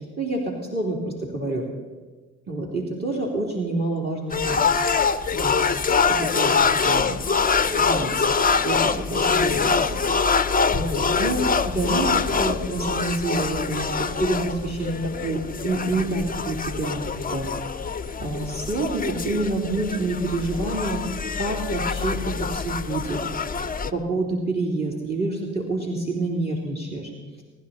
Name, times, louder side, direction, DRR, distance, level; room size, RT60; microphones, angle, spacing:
voice 1, 0.2-1.6 2.5-4.6 5.0-6.6 6.8-7.2 7.6-8.3 8.6-10.0 10.3-10.4 10.7-17.0 17.3-17.5 18.2-21.0 21.4-23.2 23.8-27.1, right 2 dB, 30° right, 0 dB, 3.3 m, -28 dB
sound 1, 4.3-23.9, left 5 dB, 25° left, 0.8 m, -24 dB
24.0 x 11.0 x 4.2 m, 1.4 s
hypercardioid pair, 45°, 35 cm